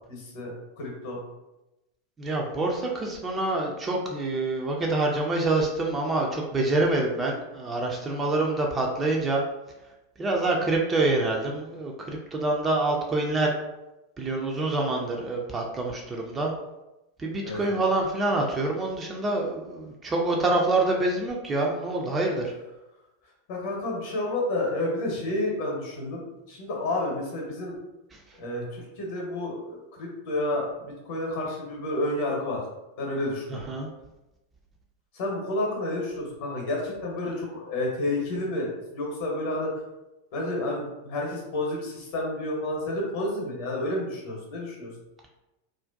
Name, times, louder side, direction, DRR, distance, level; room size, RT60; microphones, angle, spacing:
voice 1, 0.1-1.2 17.4-17.8 23.5-27.7 28.3-32.6 33.0-33.6 35.1-39.7 40.3-44.9, left 1 dB, 50° left, -1 dB, 0.8 m, -30 dB
voice 2, 2.2-9.4 10.2-13.5 14.2-16.5 17.2-22.5 28.1-28.2 33.5-33.9, right 2 dB, 20° right, 0 dB, 0.4 m, -26 dB
2.5 x 2.1 x 2.4 m, 0.97 s
figure-of-eight pair, 90°, 0 cm